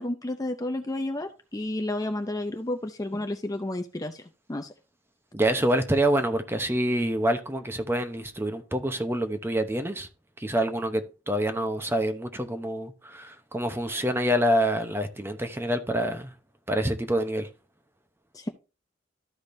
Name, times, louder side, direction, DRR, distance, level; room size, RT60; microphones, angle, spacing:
voice 1, 0.0-4.2 4.5-4.7 18.3-18.5, left 1 dB, 20° left, 0.5 m, -31 dB
voice 2, 5.3-10.1 10.4-16.3 16.7-17.5, right 1 dB, 10° right, 0.8 m, -26 dB
13.0 x 5.1 x 2.6 m
head